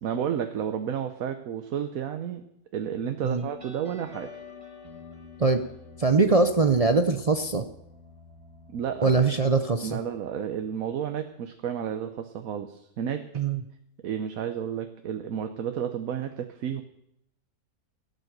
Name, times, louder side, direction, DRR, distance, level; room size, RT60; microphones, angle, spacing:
voice 1, 0.0-2.4 2.7-4.3 8.7-9.1 9.8-13.2 14.0-16.8, right 8 dB, 70° right, 7 dB, 1.2 m, -31 dB
sound 1, 3.4-10.5, left 4 dB, 20° right, 2.2 m, -48 dB
voice 2, 6.0-7.6 9.0-10.0 13.3-13.6, right 4 dB, 45° right, 8 dB, 0.4 m, -22 dB
16.5 x 9.1 x 6.6 m, 0.79 s
omnidirectional pair, 1.6 m